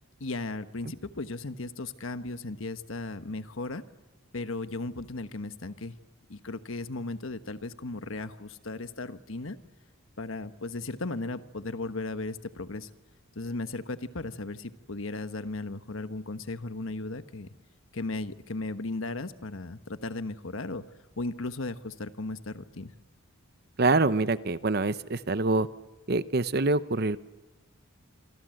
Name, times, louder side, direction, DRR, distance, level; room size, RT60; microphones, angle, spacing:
voice 1, 0.2-3.8 4.3-5.9 6.3-9.6 10.2-12.9 13.3-17.5 17.9-20.8 21.2-22.9, left 2 dB, 75° left, 11 dB, 1.3 m, -36 dB
voice 2, 23.8-25.7 26.1-27.2, right 3 dB, 50° right, 14 dB, 0.8 m, -25 dB
27.0 x 24.5 x 7.8 m, 1.2 s
head